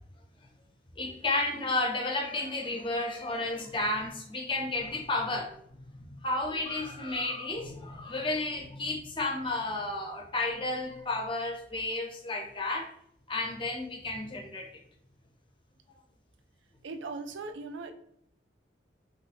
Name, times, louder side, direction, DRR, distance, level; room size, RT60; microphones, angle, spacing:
voice 1, 1.0-5.6 6.0-12.9 13.3-14.7, left 2 dB, 30° left, 3 dB, 0.5 m, -32 dB
voice 2, 16.8-17.9, right 3 dB, 90° right, 7 dB, 0.4 m, -39 dB
5.5 x 2.1 x 2.5 m, 0.69 s
head